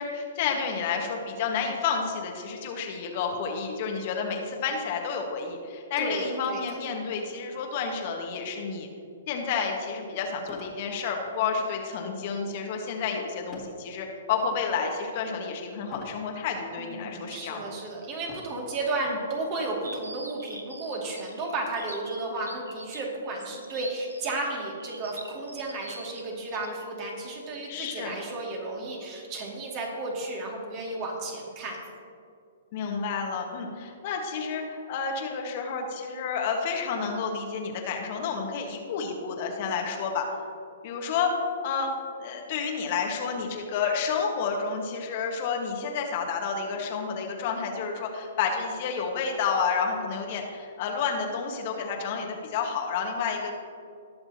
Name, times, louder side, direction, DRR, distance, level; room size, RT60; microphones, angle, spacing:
voice 1, 0.0-8.9 9.3-17.7 19.1-19.2 27.7-28.1 32.7-40.3 40.8-41.3 41.6-41.9 42.2-53.5, left 5 dB, 45° left, 2 dB, 1.5 m, -30 dB
voice 2, 6.0-6.8 16.8-31.8, right 2 dB, 35° right, -1 dB, 2.4 m, -33 dB
sound 1, 9.5-9.6 10.4-10.9 11.3-11.6 13.5-13.9 14.5-14.9 15.9-16.3 17.0-17.1 18.2-18.7 19.7-19.8 20.2-20.3 20.7-21.8, left 3 dB, 20° left, 2.1 m, -46 dB
sound 2, 19.8-26.9, right 2 dB, 90° right, 0.9 m, -43 dB
19.5 x 6.6 x 2.9 m, 2.4 s
figure-of-eight pair, 120°, 0 cm